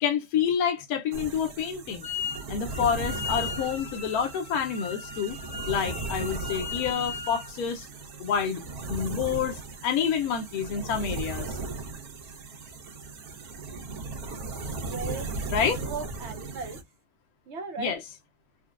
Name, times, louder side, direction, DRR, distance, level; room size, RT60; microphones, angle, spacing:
voice 1, 0.0-2.0 2.5-5.4 5.7-7.9 8.2-8.6 8.9-11.6 15.5-15.8 17.8-18.1, left 7 dB, 85° left, 1.1 m, -28 dB
sound 1, 1.1-16.8, right 3 dB, 85° right, 1.4 m, -37 dB
Wind instrument woodwind instrument, 2.0-2.4 2.7-7.5, left 6 dB, 20° left, 0.8 m, -37 dB
voice 2, 14.9-16.8 17.5-18.0, right 4 dB, 55° right, 0.9 m, -37 dB
4.1 x 2.2 x 2.3 m
omnidirectional pair, 1.6 m